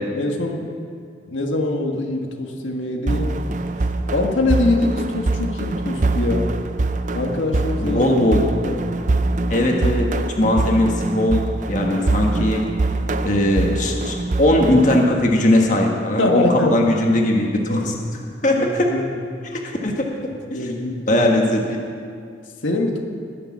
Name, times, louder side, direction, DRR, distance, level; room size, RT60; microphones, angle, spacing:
voice 1, 0.1-0.7 1.3-3.4 3.8-6.5 7.1-8.0 8.6-8.8 16.2-16.8 17.7-18.1 18.6-19.2 20.5-21.3 22.6-23.0, left 2 dB, 85° left, 1 dB, 1.6 m, -23 dB
sound 1, 3.1-15.0, right 2 dB, 40° right, 0.4 m, -23 dB
voice 2, 7.8-8.4 9.5-10.1 10.4-12.6 13.2-17.9 18.4-18.9 19.4-20.1 20.5-20.7 21.1-21.8, left 1 dB, 40° left, 0 dB, 1.5 m, -19 dB
20.5 x 6.9 x 7.3 m, 2.4 s
head